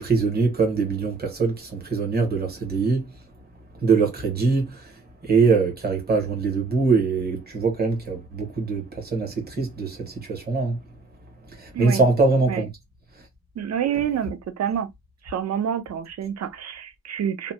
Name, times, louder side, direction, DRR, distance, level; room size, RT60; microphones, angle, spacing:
voice 1, 0.0-3.1 3.8-10.8 11.5-12.7, right 4 dB, 25° right, 1.0 m, -23 dB
voice 2, 13.6-14.9 15.2-17.5, right 9 dB, 50° right, 0.5 m, -27 dB
2.8 x 2.1 x 2.7 m
wide cardioid pair, 175°, 35 cm